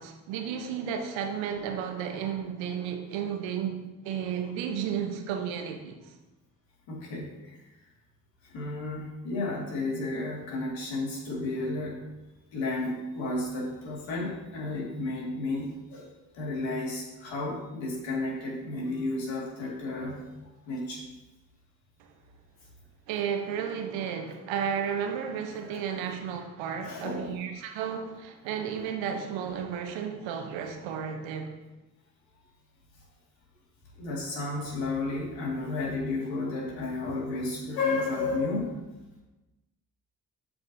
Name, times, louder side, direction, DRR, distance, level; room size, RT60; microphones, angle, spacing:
voice 1, 0.0-6.0 23.1-31.5, right 8 dB, 70° right, 4 dB, 1.1 m, -33 dB
voice 2, 6.9-7.6 8.5-12.0 12.5-20.2 20.7-21.0 25.7-26.0 26.8-27.4 34.0-38.7, left 2 dB, 70° left, -3 dB, 2.2 m, -32 dB
13.0 x 4.6 x 2.7 m, 1.0 s
hypercardioid pair, 40°, 47 cm